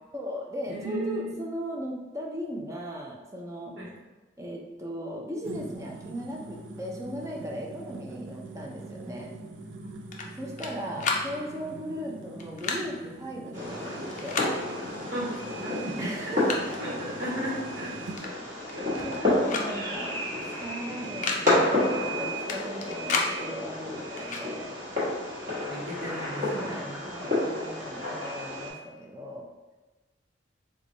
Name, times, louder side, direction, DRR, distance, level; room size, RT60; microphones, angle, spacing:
voice 1, 0.1-3.7 4.4-9.3 10.3-14.5 16.0-16.6 19.0-24.7 26.5-29.5, equal, 15° right, -2 dB, 0.5 m, -37 dB
voice 2, 0.7-1.4 3.8-3.9 9.0-9.2 9.8-9.9 15.1-15.3 15.6-16.3 16.8-18.4 18.7-19.5 25.7-27.0, right 1 dB, 65° right, -6 dB, 1.1 m, -36 dB
sound 1, 5.4-18.2, right 2 dB, 85° right, 0.5 m, -44 dB
sound 2, 10.1-10.7 11.0-11.3 12.4-12.8 14.1-14.5 15.6-15.7 16.1-16.8 18.2-18.3 18.6-19.2 19.5-19.7 20.0-20.1 21.0-21.4 22.5-23.3 24.2-24.4, left 4 dB, 40° left, 0.4 m, -31 dB
Fireworks, 13.5-28.7, left 1 dB, 40° right, 1.3 m, -30 dB
3.3 x 2.2 x 3.8 m, 1.2 s
head